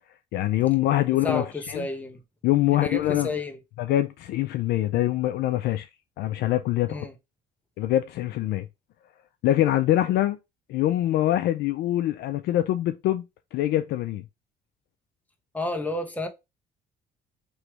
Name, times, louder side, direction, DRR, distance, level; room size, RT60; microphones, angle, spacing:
voice 1, 0.3-1.8 2.4-3.3 3.8-5.9 6.2-7.1 7.8-8.7 9.4-10.4 10.7-13.2 13.5-14.2, left 14 dB, 75° left, 0.4 m, -24 dB
voice 2, 1.2-2.2 2.7-3.6 6.9-7.1 15.5-16.3, left 2 dB, 10° left, 0.9 m, -31 dB
3.1 x 3.0 x 4.6 m
cardioid pair, 110°, 17 cm